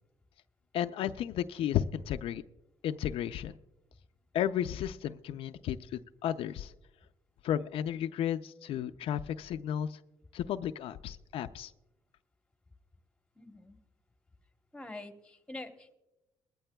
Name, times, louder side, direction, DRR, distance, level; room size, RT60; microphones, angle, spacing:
voice 1, 0.7-2.4 2.8-3.5 4.3-6.7 7.4-10.0 10.3-11.7, left 10 dB, 70° left, 9 dB, 0.4 m, -33 dB
voice 2, 13.4-13.8 14.7-15.9, left 2 dB, 10° left, 7 dB, 1.0 m, -45 dB
20.5 x 14.5 x 2.3 m, 0.96 s
cardioid pair, 105°, 10 cm